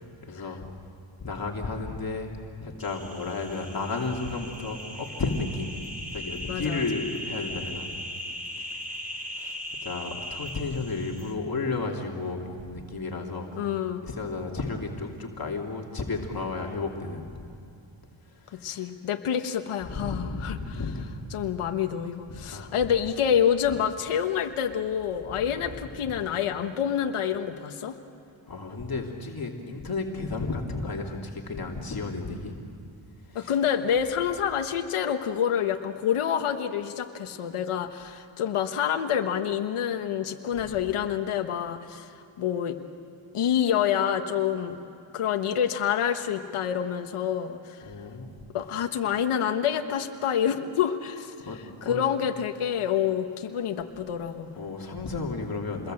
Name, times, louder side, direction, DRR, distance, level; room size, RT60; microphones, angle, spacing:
voice 1, 0.2-0.6 1.2-5.8 6.1-7.9 9.4-13.5 14.0-17.4 18.6-18.8 19.9-21.1 22.3-22.7 28.5-32.6 33.3-33.5 40.5-40.7 47.8-48.3 51.5-52.0 54.6-55.9, left 3 dB, 45° left, 0 dB, 2.9 m, -33 dB
sound 1, 2.8-11.3, equal, 15° right, 4.7 m, -38 dB
voice 2, 6.5-6.8 13.6-14.0 18.5-20.8 21.3-28.0 33.3-42.1 42.4-42.8 43.3-44.8 45.1-47.8 48.5-54.5, left 8 dB, 85° left, 6 dB, 1.3 m, -27 dB
28.5 x 21.5 x 7.8 m, 2.7 s
cardioid pair, 75°, 49 cm